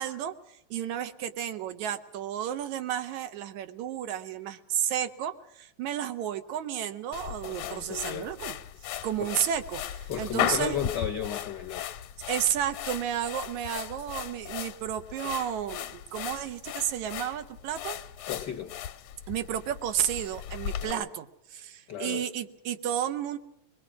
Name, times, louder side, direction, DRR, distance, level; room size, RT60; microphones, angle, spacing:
voice 1, 0.0-8.6 9.0-10.8 12.3-18.0 19.3-23.4, right 10 dB, 80° right, 10 dB, 2.4 m, -32 dB
sound 1, 7.1-20.9, left 11 dB, 75° left, 2.3 m, -37 dB
voice 2, 7.4-8.3 9.2-9.3 10.1-12.0 18.3-18.8 20.8-21.0 21.5-22.2, left 8 dB, 55° left, 4 dB, 1.2 m, -35 dB
22.0 x 22.0 x 6.1 m, 0.80 s
omnidirectional pair, 3.3 m